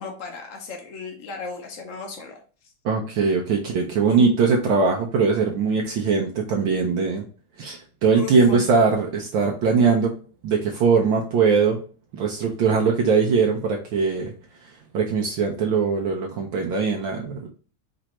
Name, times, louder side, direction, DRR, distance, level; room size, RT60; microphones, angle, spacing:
voice 1, 0.0-2.4 4.1-4.2 8.1-8.6, left 3 dB, 80° left, 3 dB, 0.7 m, -35 dB
voice 2, 2.8-7.2 7.6-10.1 10.4-11.8 12.1-14.3 14.6-17.5, right 5 dB, 70° right, 1 dB, 1.3 m, -21 dB
5.1 x 3.3 x 3.0 m, 0.38 s
omnidirectional pair, 2.4 m